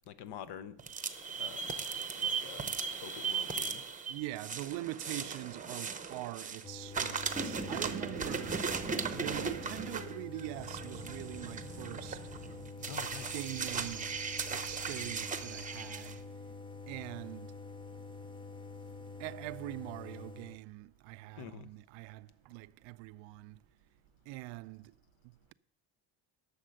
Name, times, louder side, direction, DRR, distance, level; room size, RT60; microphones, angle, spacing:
voice 1, 0.1-0.8 1.4-1.8 2.2-2.7 3.0-3.8 12.8-13.4 21.4-21.7, left 9 dB, 60° left, 0.9 m, -47 dB
sound 1, 0.8-6.6 6.9-16.1, right 5 dB, 15° right, 0.8 m, -37 dB
voice 2, 4.1-8.7 9.1-12.2 12.8-12.9 13.3-14.2 14.5-16.2 16.9-17.5 19.2-23.6 24.3-24.9, right 18 dB, 80° right, 0.5 m, -43 dB
sound 2, 6.6-20.6, left 4 dB, 10° left, 0.4 m, -47 dB
11.5 x 6.7 x 6.5 m
cardioid pair, 115°, 45 cm